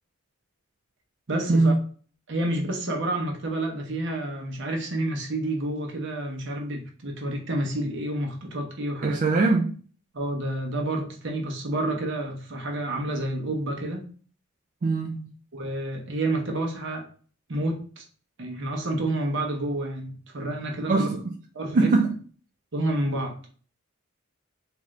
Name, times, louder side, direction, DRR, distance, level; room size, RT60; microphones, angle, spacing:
voice 1, 1.3-1.8 2.3-9.2 10.1-14.1 15.5-17.1 17.5-18.0 18.4-21.1 21.5-21.9 22.7-23.4, right 1 dB, 60° right, 0.9 m, -29 dB
voice 2, 9.0-9.7 14.8-15.3 20.9-21.2 21.7-22.1, right 3 dB, 40° right, 0.3 m, -21 dB
3.7 x 2.6 x 3.2 m
head